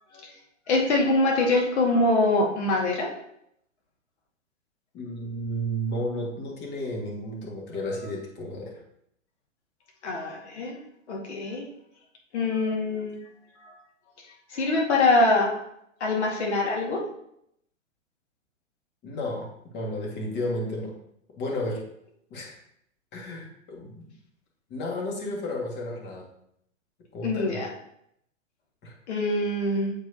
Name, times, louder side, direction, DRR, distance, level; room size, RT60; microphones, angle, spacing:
voice 1, 0.7-3.1 10.0-10.8 11.1-11.6 12.3-13.2 14.5-15.6 16.0-17.0 27.2-27.7 29.1-29.9, left 2 dB, 60° left, -1 dB, 2.0 m, -24 dB
voice 2, 4.9-8.8 19.0-19.5 19.7-20.9 21.4-21.8 22.3-22.6 23.1-24.1 24.7-26.2 27.1-27.6 28.8-29.0, equal, 30° left, -1 dB, 1.9 m, -32 dB
7.9 x 4.8 x 2.8 m, 0.73 s
figure-of-eight pair, 110°, 38 cm